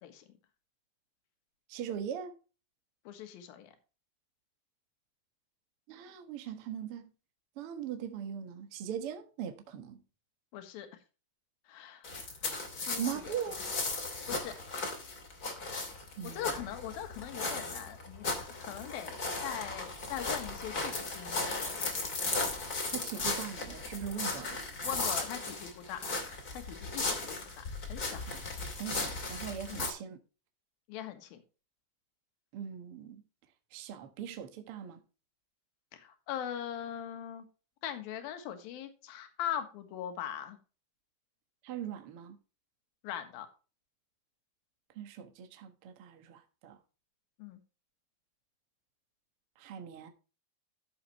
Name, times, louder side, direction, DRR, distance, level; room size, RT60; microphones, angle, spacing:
voice 1, 1.7-2.4 5.9-7.1 7.5-10.0 12.9-13.6 16.2-16.6 22.9-24.6 28.2-28.4 28.7-30.2 32.5-33.2 33.7-35.0 41.6-42.4 44.9-46.8 49.6-50.1, right 9 dB, 65° right, 1.3 m, -40 dB
voice 2, 3.1-3.7 10.5-10.9 11.7-12.2 12.9-13.3 14.3-14.5 16.2-21.8 24.8-26.0 26.5-28.2 30.9-31.4 35.9-37.5 37.8-40.6 43.0-43.5 47.4-47.6, left 10 dB, 65° left, 3.1 m, -41 dB
sound 1, 12.0-29.9, left 3 dB, 30° left, 2.1 m, -36 dB
13.5 x 6.9 x 3.1 m
omnidirectional pair, 4.8 m